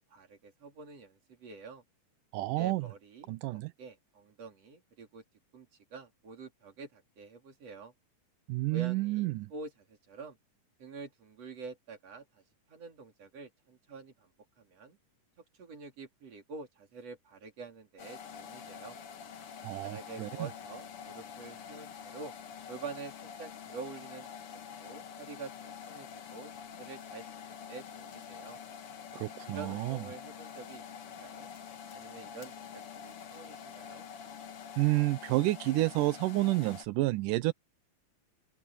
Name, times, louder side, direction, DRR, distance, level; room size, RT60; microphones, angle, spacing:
voice 1, 0.0-1.8 2.6-5.2 5.5-7.9 8.7-10.4 10.8-12.4 12.7-14.3 14.6-15.0 15.5-19.0 19.8-22.3 22.7-24.3 24.8-28.6 29.5-31.5 31.9-34.1, right 4 dB, 50° right, 4.4 m, -47 dB
voice 2, 2.3-2.8 3.3-3.7 8.5-9.5 19.6-20.3 29.1-30.0 34.8-37.5, right 19 dB, 85° right, 2.3 m, -30 dB
sound 1, 18.0-36.9, left 7 dB, 50° left, 2.0 m, -46 dB
open air
omnidirectional pair, 3.8 m